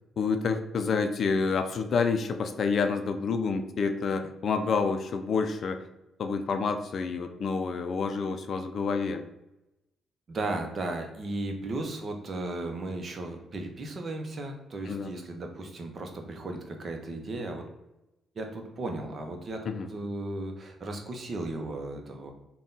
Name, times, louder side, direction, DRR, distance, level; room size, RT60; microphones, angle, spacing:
voice 1, 0.2-5.8 6.2-9.2 14.9-15.1 19.7-19.9, left 5 dB, 55° left, 7 dB, 0.4 m, -28 dB
voice 2, 10.3-17.6 18.3-22.3, right 2 dB, 45° right, 3 dB, 0.8 m, -35 dB
3.6 x 2.3 x 3.8 m, 0.93 s
cardioid pair, 90°, 0 cm